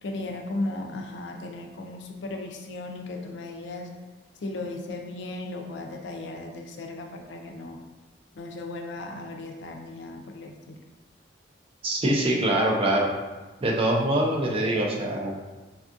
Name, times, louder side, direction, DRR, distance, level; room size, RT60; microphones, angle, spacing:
voice 1, 0.0-3.9 4.4-7.8 8.4-10.8, left 2 dB, 75° left, 2 dB, 0.4 m, -36 dB
voice 2, 11.8-13.1 13.6-15.3, right 1 dB, 30° right, -1 dB, 0.4 m, -24 dB
3.5 x 2.3 x 2.5 m, 1.2 s
head